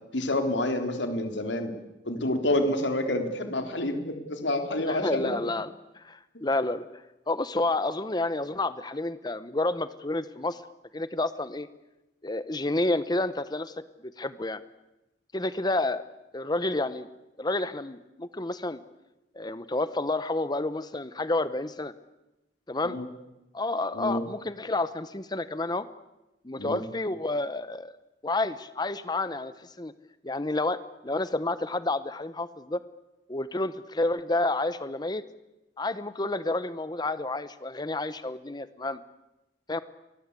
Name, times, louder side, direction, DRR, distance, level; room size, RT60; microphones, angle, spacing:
voice 1, 0.1-1.7 2.1-5.4 22.8-23.1 23.9-24.2 26.6-26.8, left 1 dB, 85° left, 6 dB, 4.0 m, -28 dB
voice 2, 4.9-6.9 7.3-10.6 10.9-11.7 12.2-13.7 14.0-14.6 15.3-16.0 16.3-17.1 17.4-18.8 19.3-21.9 22.7-23.0 23.5-25.9 26.4-27.9 28.2-29.9 30.2-32.8 33.3-35.3 35.8-39.0 39.7-39.8, left 2 dB, 25° left, 13 dB, 1.0 m, -30 dB
30.0 x 23.5 x 8.4 m, 0.97 s
head